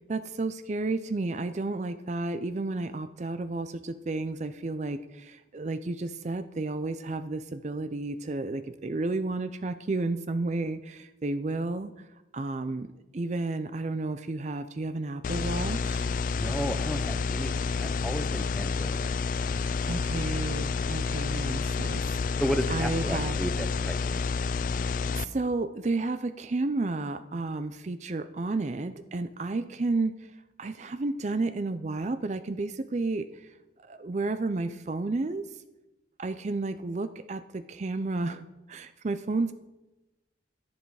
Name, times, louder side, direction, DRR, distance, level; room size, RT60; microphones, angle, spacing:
voice 1, 0.1-12.1 12.3-16.1 19.9-22.4 22.7-23.4 25.1-30.3 30.6-35.6 36.2-38.4 38.7-39.5, right 3 dB, 40° right, 11 dB, 0.4 m, -32 dB
sound 1, 15.2-25.3, left 4 dB, 45° left, 0.3 m, -29 dB
voice 2, 16.3-17.5 17.8-19.0 22.4-24.3, equal, ahead, 8 dB, 0.6 m, -33 dB
11.5 x 10.0 x 4.8 m, 1.0 s
head